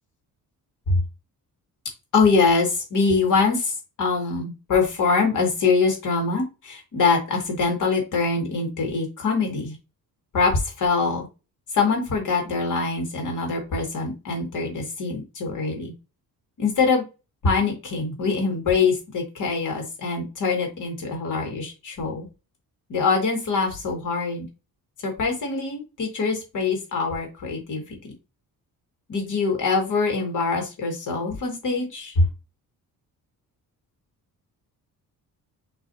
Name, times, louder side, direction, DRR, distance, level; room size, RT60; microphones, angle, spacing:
voice 1, 2.1-9.8 10.3-11.3 11.7-15.9 16.6-17.0 17.4-22.3 22.9-24.5 25.0-28.0 29.1-32.3, left 4 dB, 55° left, 2 dB, 2.1 m, -24 dB
6.2 x 3.1 x 2.8 m, 0.28 s
wide cardioid pair, 175°, 37 cm